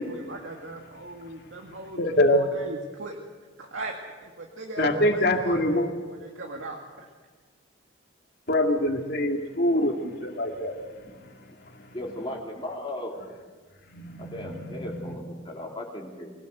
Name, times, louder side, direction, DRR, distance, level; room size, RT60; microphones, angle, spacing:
voice 1, 0.0-3.2 3.6-3.9 4.2-7.1, right 2 dB, 80° right, 0 dB, 2.1 m, -39 dB
voice 2, 2.0-2.4 4.8-5.9 8.5-10.7 13.9-15.2, left 1 dB, 55° left, 3 dB, 2.3 m, -24 dB
voice 3, 11.9-13.2 14.3-16.3, left 1 dB, 25° left, -1 dB, 2.9 m, -36 dB
24.0 x 17.5 x 8.0 m, 1.5 s
head